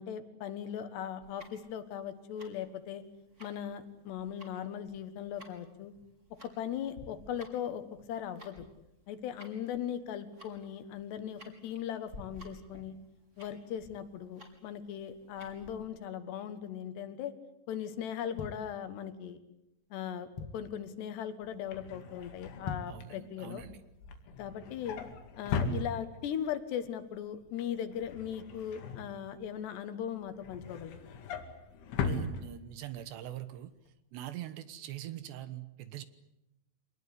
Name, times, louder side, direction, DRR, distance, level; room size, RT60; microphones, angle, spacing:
voice 1, 0.0-3.0 3.4-5.9 6.4-7.8 8.1-8.7 9.1-12.9 13.4-17.3 17.7-19.4 19.9-20.3 20.5-23.6 24.4-25.0 25.4-31.0, left 9 dB, 70° left, 11 dB, 3.4 m, -38 dB
Tick-tock, 1.2-15.8, left 1 dB, 15° right, 4.2 m, -55 dB
sound 1, 18.3-19.3 19.8-19.9 20.1-20.8 21.3-21.6 21.8-21.9 22.5-23.1 23.5-23.6, left 5 dB, 40° left, 2.0 m, -42 dB
Drawer open or close, 21.4-26.5 26.8-27.2 27.4-29.6 30.1-33.0 33.4-33.6 33.9-34.0, left 4 dB, 90° left, 4.8 m, -39 dB
voice 2, 22.9-23.8 32.0-33.7 34.1-36.1, right 12 dB, 75° right, 13 dB, 3.3 m, -43 dB
26.0 x 20.0 x 9.7 m, 0.87 s
omnidirectional pair, 5.3 m